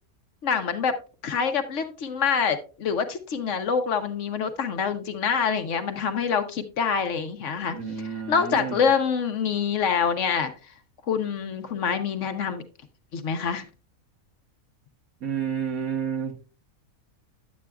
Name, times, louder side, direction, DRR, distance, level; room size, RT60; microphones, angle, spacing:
voice 1, 0.4-0.9 1.2-7.8 8.3-10.5 11.1-12.6 13.1-13.6, left 6 dB, 60° left, 9 dB, 1.1 m, -26 dB
voice 2, 7.7-8.9 15.2-16.4, right 7 dB, 80° right, 1 dB, 1.7 m, -30 dB
10.0 x 8.4 x 2.3 m, 0.34 s
omnidirectional pair, 1.5 m